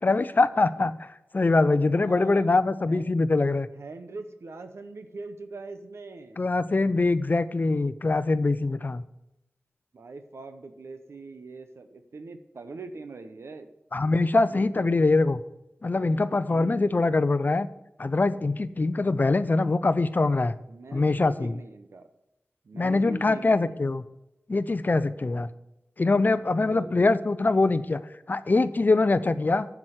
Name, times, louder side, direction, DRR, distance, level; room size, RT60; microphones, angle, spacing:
voice 1, 0.0-3.7 6.4-9.0 13.9-15.4 15.8-17.7 18.0-20.6 20.9-21.6 22.7-24.0 24.5-25.5 26.0-28.0 28.3-29.7, left 3 dB, 45° left, 14 dB, 0.5 m, -23 dB
voice 2, 2.0-3.1 3.8-6.4 9.9-13.7 14.5-15.0 16.5-17.0 20.7-22.1 22.6-23.8 26.5-27.2, right 3 dB, 80° right, 8 dB, 0.8 m, -42 dB
7.6 x 6.0 x 7.9 m, 0.89 s
wide cardioid pair, 60°, 4 cm